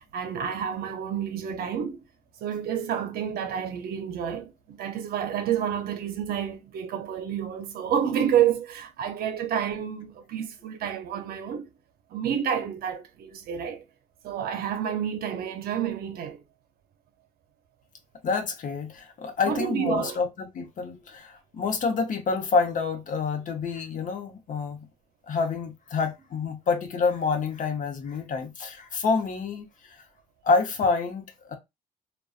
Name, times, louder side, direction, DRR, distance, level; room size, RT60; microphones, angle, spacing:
voice 1, 0.1-2.0 2.4-11.7 12.1-13.8 14.2-16.4 19.5-20.2, right 9 dB, 70° right, 0.6 m, -29 dB
voice 2, 18.2-24.9 25.3-30.0 30.4-31.6, left 4 dB, 55° left, 0.8 m, -28 dB
2.4 x 2.2 x 2.4 m
supercardioid pair, 60°, 16 cm